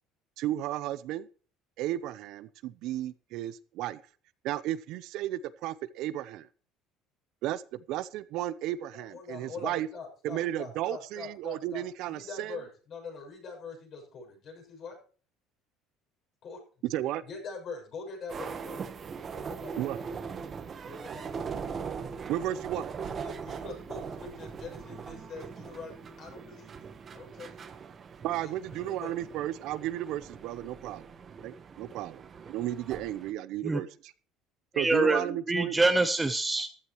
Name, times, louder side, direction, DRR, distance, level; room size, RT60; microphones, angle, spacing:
voice 1, 0.4-1.3 1.8-4.0 4.4-6.5 7.4-9.9 10.2-12.6 16.9-17.2 19.8-20.0 22.3-22.9 28.2-31.1 31.4-34.1 34.8-35.8, right 13 dB, 65° right, 16 dB, 0.8 m, -34 dB
voice 2, 8.9-15.0 16.4-16.9 17.2-18.8 19.3-19.8 20.8-21.5 22.6-22.8 23.2-27.7 28.4-29.2, left 4 dB, 45° left, 2 dB, 7.0 m, -44 dB
sound 1, 18.3-33.3, right 6 dB, 30° right, 1.2 m, -41 dB
voice 3, 34.7-36.8, right 2 dB, 10° right, 9 dB, 0.9 m, -26 dB
14.5 x 13.0 x 3.1 m, 0.41 s
cardioid pair, 145°, 0 cm